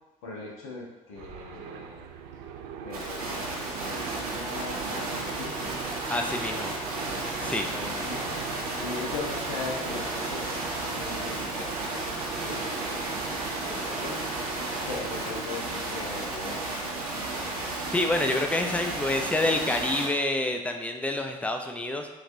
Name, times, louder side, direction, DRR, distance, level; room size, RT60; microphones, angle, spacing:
voice 1, 0.2-2.1 2.8-5.7 6.5-7.1 7.5-8.4 8.8-14.2 14.9-17.1, left 3 dB, 65° left, -3 dB, 1.0 m, -40 dB
sound 1, 1.1-18.7, right 8 dB, 60° right, 0.4 m, -46 dB
sound 2, 2.9-20.1, right 2 dB, 85° right, 0.7 m, -33 dB
sound 3, 3.8-15.4, right 4 dB, 35° right, 0.7 m, -39 dB
voice 2, 6.1-6.7 7.4-7.7 17.9-22.1, left 2 dB, 5° left, 4 dB, 0.5 m, -27 dB
5.8 x 2.5 x 2.6 m, 1.1 s
figure-of-eight pair, 55°, 19 cm